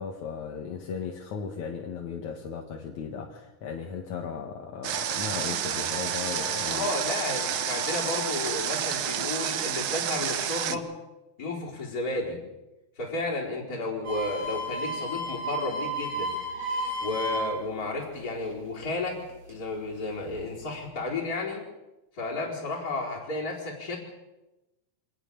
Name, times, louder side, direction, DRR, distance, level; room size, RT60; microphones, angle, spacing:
voice 1, 0.0-6.9 10.7-10.9, left 6 dB, 65° left, 2 dB, 2.9 m, -36 dB
Water, 4.8-10.8, right 10 dB, 80° right, 1.2 m, -30 dB
Wind instrument woodwind instrument, 4.9-9.0, left 2 dB, 30° right, 6.9 m, -41 dB
voice 2, 6.7-10.8 11.4-12.4 13.0-16.3 17.0-19.2 19.5-21.6 22.1-24.0, left 2 dB, 25° left, -5 dB, 4.7 m, -32 dB
sound 1, 14.0-17.8 18.1-19.5 20.1-20.6, right 1 dB, 50° right, 8.8 m, -33 dB
26.0 x 19.0 x 7.0 m, 1.0 s
omnidirectional pair, 3.8 m